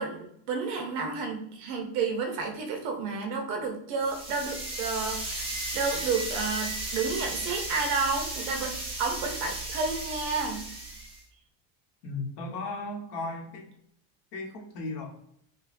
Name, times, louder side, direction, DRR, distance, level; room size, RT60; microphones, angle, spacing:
voice 1, 0.0-8.7 9.0-10.7, right 4 dB, 50° right, 3 dB, 0.8 m, -31 dB
sound 1, 4.0-11.2, right 2 dB, 10° right, 0.8 m, -35 dB
voice 2, 12.0-13.7 14.3-15.1, left 2 dB, 50° left, 1 dB, 1.0 m, -35 dB
5.0 x 2.2 x 2.5 m, 0.69 s
cardioid pair, 165°, 50 cm